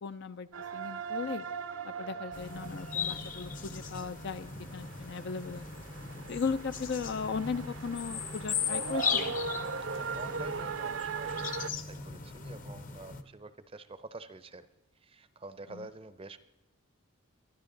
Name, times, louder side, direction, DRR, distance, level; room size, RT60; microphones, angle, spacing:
voice 1, 0.0-1.5 1.8-5.8 6.3-9.3 15.7-15.9, left 5 dB, 50° left, 12 dB, 0.4 m, -37 dB
Prayer Mosque Call CIty Beirut Natural, 0.5-11.7, right 5 dB, 65° right, 0.7 m, -39 dB
sound 1, 2.3-13.2, left 6 dB, 35° left, 0.8 m, -38 dB
voice 2, 10.0-14.7 15.0-16.4, right 3 dB, 25° right, 13 dB, 0.6 m, -48 dB
23.5 x 13.0 x 3.9 m, 0.99 s
head